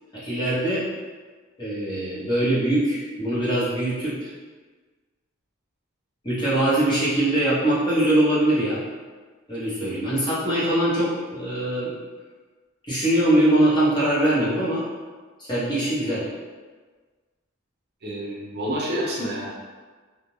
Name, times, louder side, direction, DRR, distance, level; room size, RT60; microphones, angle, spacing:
voice 1, 0.1-0.8 1.6-4.3 6.2-8.8 9.5-11.9 12.9-14.8 15.5-16.3, right 1 dB, 20° left, -10 dB, 0.9 m, -22 dB
voice 2, 18.0-19.5, equal, 55° right, -5 dB, 0.6 m, -28 dB
2.4 x 2.1 x 3.0 m, 1.4 s
head